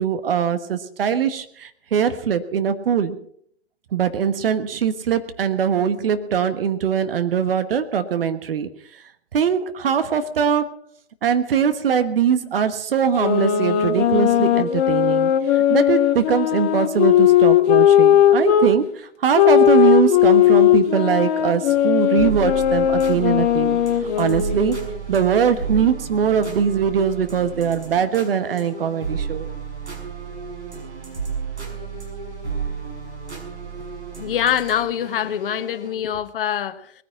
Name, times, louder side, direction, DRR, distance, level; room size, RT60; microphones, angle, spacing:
voice 1, 0.0-3.2 3.9-9.0 9.3-10.7 11.2-24.8 25.1-29.5, right 7 dB, 55° right, 1.4 m, -21 dB
sound 1, 13.2-18.7 19.3-24.9, left 11 dB, 35° left, 1.6 m, -17 dB
sound 2, 22.1-36.0, right 5 dB, 80° right, 6.0 m, -32 dB
voice 2, 34.2-36.9, left 10 dB, 55° left, 1.2 m, -24 dB
20.0 x 10.0 x 6.0 m
figure-of-eight pair, 125°, 33 cm